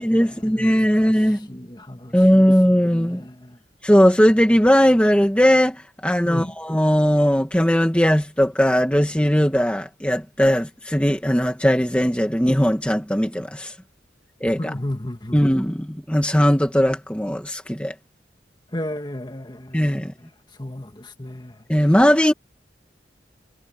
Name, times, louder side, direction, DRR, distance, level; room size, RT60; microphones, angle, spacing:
voice 1, 0.0-1.5 2.1-3.2 3.8-13.7 14.4-14.7 15.3-17.9 19.7-20.1 21.7-22.3, equal, 5° left, 1.5 m, -18 dB
voice 2, 1.5-2.5 2.9-3.6 6.2-6.5 14.6-15.4 18.7-20.0 20.6-21.5, left 1 dB, 25° left, 2.0 m, -33 dB
head